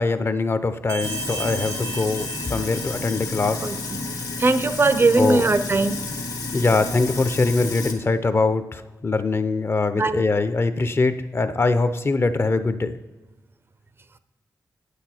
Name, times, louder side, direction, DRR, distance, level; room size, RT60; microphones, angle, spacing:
voice 1, 0.0-3.7 5.2-5.4 6.5-12.9, left 3 dB, 35° left, 11 dB, 0.7 m, -22 dB
sound 1, 0.9-3.4, right 3 dB, 70° right, 0.8 m, -35 dB
Sink (filling or washing), 1.0-7.9, left 3 dB, 70° left, 1.5 m, -31 dB
voice 2, 3.6-6.0 9.9-10.2, right 3 dB, 35° right, 13 dB, 0.6 m, -21 dB
9.0 x 8.2 x 4.4 m, 1.1 s
wide cardioid pair, 90°, 7 cm